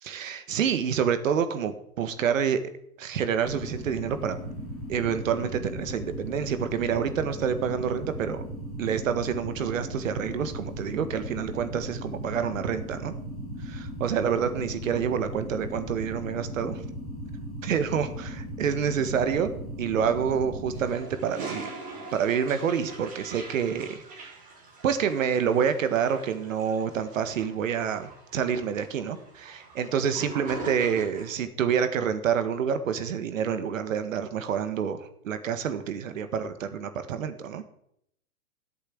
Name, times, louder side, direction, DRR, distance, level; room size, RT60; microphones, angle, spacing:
voice 1, 0.0-2.7 3.0-4.4 4.9-8.4 8.8-13.1 13.6-16.8 17.6-19.5 19.8-21.7 22.1-24.4 24.8-37.6, right 7 dB, 60° right, 10 dB, 1.9 m, -28 dB
sound 1, 3.4-20.9, equal, ahead, 3.9 m, -37 dB
Toilet flush, 20.7-31.4, right 3 dB, 20° right, 4.6 m, -43 dB
17.5 x 8.3 x 7.8 m, 0.72 s
hypercardioid pair, 155°, 45 cm